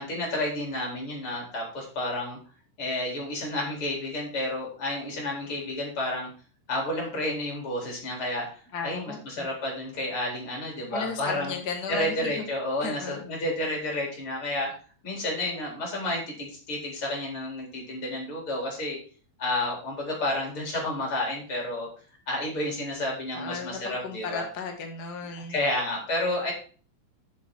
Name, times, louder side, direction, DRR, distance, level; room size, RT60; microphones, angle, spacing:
voice 1, 0.0-2.4 2.8-6.3 6.7-11.5 11.9-14.7 15.0-19.0 19.4-21.9 22.3-24.4 25.3-26.5, left 1 dB, 35° left, -1 dB, 4.6 m, -31 dB
voice 2, 8.7-9.5 10.9-12.4 12.8-13.2 23.3-25.6, left 5 dB, 65° left, 3 dB, 0.9 m, -35 dB
9.2 x 7.4 x 4.6 m, 0.39 s
omnidirectional pair, 4.4 m